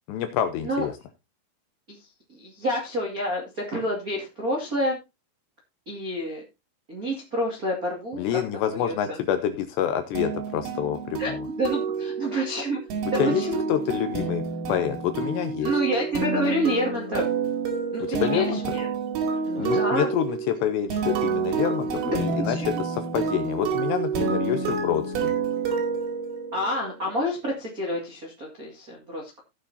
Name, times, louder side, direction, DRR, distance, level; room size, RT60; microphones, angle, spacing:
voice 1, 0.1-0.9 8.2-11.5 13.2-13.4 13.7-15.7 18.1-18.6 19.3-25.3, left 10 dB, 80° left, 9 dB, 2.5 m, -27 dB
voice 2, 2.3-5.0 5.8-6.4 6.9-8.4 8.7-9.2 10.1-10.2 11.2-11.3 11.6-12.8 13.3-13.6 15.6-17.2 17.9-18.9 19.4-20.1 22.0-22.8 24.6-24.7 26.5-29.4, equal, 65° right, -2 dB, 0.8 m, -28 dB
sound 1, 10.2-26.8, right 5 dB, 85° right, 4.8 m, -28 dB
17.0 x 6.8 x 2.7 m, 0.23 s
omnidirectional pair, 5.7 m